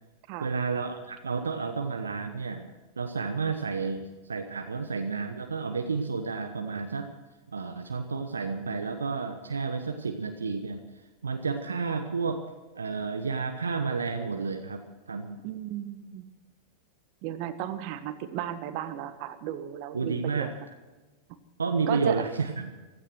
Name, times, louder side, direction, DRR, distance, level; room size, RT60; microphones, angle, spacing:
voice 1, 0.4-2.6 3.0-7.1 7.5-10.8 11.2-12.4 12.8-14.8 15.1-15.4 19.9-20.5 21.6-22.7, right 4 dB, 85° right, 5 dB, 1.1 m, -31 dB
voice 2, 15.4-16.3 17.2-20.5 21.9-22.2, right 12 dB, 50° right, 10 dB, 1.5 m, -35 dB
15.5 x 13.5 x 6.3 m, 1.2 s
figure-of-eight pair, 90°, 0 cm